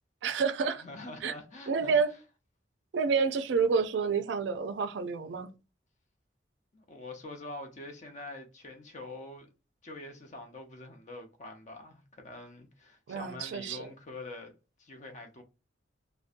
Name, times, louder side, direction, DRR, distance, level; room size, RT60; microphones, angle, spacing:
voice 1, 0.2-0.8 1.2-1.3 1.7-2.1 2.9-5.5 13.1-13.9, right 5 dB, 75° right, 0.4 m, -29 dB
voice 2, 0.8-2.0 6.7-9.5 9.8-14.5 14.8-15.4, left 2 dB, 40° left, 0.6 m, -45 dB
2.6 x 2.1 x 2.5 m
head